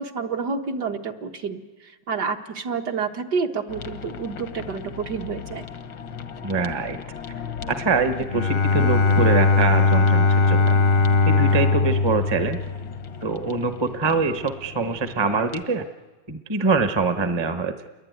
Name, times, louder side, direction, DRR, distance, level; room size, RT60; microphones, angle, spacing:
voice 1, 0.0-1.6 2.1-5.7, right 5 dB, 60° right, 4 dB, 2.0 m, -29 dB
sound 1, 3.7-15.6, left 7 dB, 85° left, 2.0 m, -38 dB
voice 2, 6.4-7.0 7.7-10.8 11.2-12.6 13.2-15.8 16.3-17.9, right 4 dB, 20° right, 8 dB, 0.9 m, -24 dB
Bowed string instrument, 8.2-13.2, left 4 dB, 45° left, 0.9 m, -19 dB
28.5 x 22.0 x 9.4 m, 1.3 s
omnidirectional pair, 2.0 m